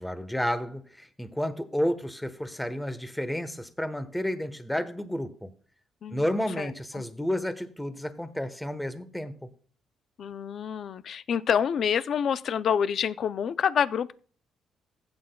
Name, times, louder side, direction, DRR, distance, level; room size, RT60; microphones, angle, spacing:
voice 1, 0.0-5.5 6.1-9.5, equal, 5° left, 1.1 m, -31 dB
voice 2, 6.6-7.0 10.2-14.1, left 8 dB, 60° left, 0.5 m, -27 dB
15.5 x 8.7 x 2.3 m
cardioid pair, 90°, 0 cm